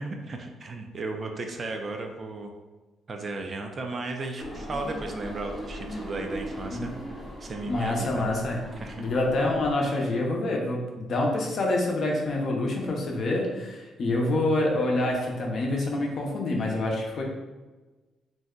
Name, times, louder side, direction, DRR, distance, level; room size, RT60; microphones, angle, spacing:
voice 1, 0.0-2.5 3.1-8.3 8.7-9.0, right 3 dB, 40° right, 3 dB, 0.4 m, -35 dB
sound 1, 4.4-9.7, equal, 5° left, 0.6 m, -38 dB
voice 2, 7.7-8.6 9.0-17.2, left 2 dB, 55° left, -1 dB, 0.6 m, -26 dB
2.6 x 2.1 x 3.6 m, 1.2 s
cardioid pair, 90°, 0 cm